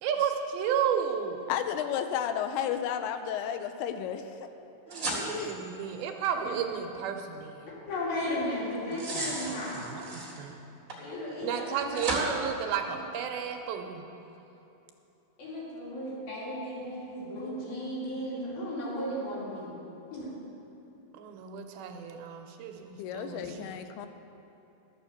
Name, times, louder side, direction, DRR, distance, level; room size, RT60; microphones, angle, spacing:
voice 1, 0.0-1.4 4.9-7.7 8.9-10.6 11.4-14.0 21.1-23.6, right 8 dB, 85° right, 4 dB, 2.5 m, -33 dB
voice 2, 1.5-4.5 5.3-5.5 23.0-24.1, left 9 dB, 85° left, 8 dB, 2.6 m, -32 dB
sound 1, 4.9-5.9 8.7-10.4 10.9-11.0 11.9-12.3, right 2 dB, 35° right, 1.3 m, -35 dB
voice 3, 7.7-9.8 11.0-12.3 15.4-19.8 20.1-20.3, left 1 dB, 70° left, -6 dB, 4.4 m, -35 dB
12.0 x 7.2 x 7.1 m, 3.0 s
omnidirectional pair, 4.5 m